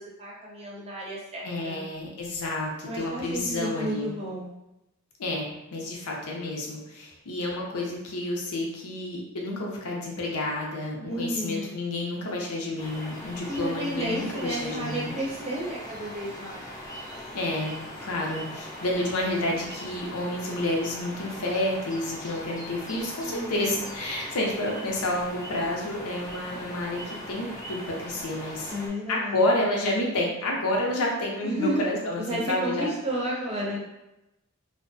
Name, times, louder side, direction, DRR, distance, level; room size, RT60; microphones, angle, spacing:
voice 1, 0.2-1.8 2.8-4.5 11.1-11.7 13.5-16.7 23.2-23.7 28.7-29.4 31.4-31.9 32.2-33.8, right 1 dB, 30° right, -4 dB, 0.6 m, -32 dB
voice 2, 1.4-4.2 5.2-15.1 17.3-28.7 29.1-32.9, left 1 dB, 90° left, -1 dB, 0.6 m, -30 dB
sound 1, 12.8-28.9, equal, 15° left, 0.4 m, -40 dB
2.6 x 2.1 x 2.5 m, 0.93 s
head